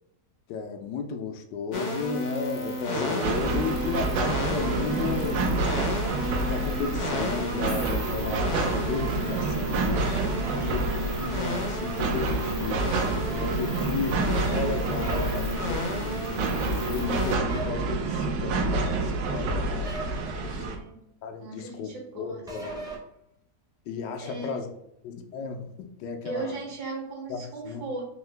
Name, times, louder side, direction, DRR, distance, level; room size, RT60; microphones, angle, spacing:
voice 1, 0.5-5.7 6.4-10.1 10.7-10.8 11.2-13.0 13.4-14.2 14.5-16.4 16.9-19.9 20.4-20.7 21.2-21.9 22.1-22.9 23.9-24.7 25.0-26.5 27.3-27.8, left 5 dB, 80° left, 4 dB, 1.2 m, -34 dB
sound 1, 1.7-17.4, equal, 55° left, 0.8 m, -33 dB
sound 2, 3.2-20.8, right 3 dB, 85° right, 1.3 m, -28 dB
voice 2, 10.3-11.0 20.3-21.0 21.4-22.9 24.2-24.7 26.2-28.1, right 3 dB, 70° right, -1 dB, 1.6 m, -38 dB
sound 3, 15.0-15.4 17.5-17.8 19.8-20.3 22.5-23.0, right 1 dB, 5° right, 0.5 m, -36 dB
3.7 x 2.8 x 3.2 m, 0.78 s
omnidirectional pair, 1.9 m